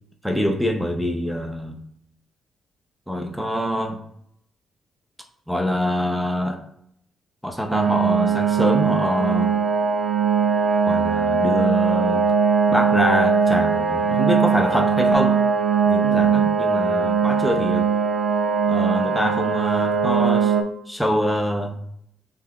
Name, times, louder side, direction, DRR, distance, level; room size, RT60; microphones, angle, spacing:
voice 1, 0.2-1.8 3.1-4.0 5.5-6.6 7.4-9.6 10.9-12.3 12.7-15.4 15.9-17.9 18.7-20.5 20.9-21.8, left 1 dB, ahead, 3 dB, 0.5 m, -25 dB
sound 1, 7.7-20.6, right 6 dB, 60° right, 0.4 m, -20 dB
5.6 x 2.8 x 2.3 m, 0.71 s
cardioid pair, 145°, 0 cm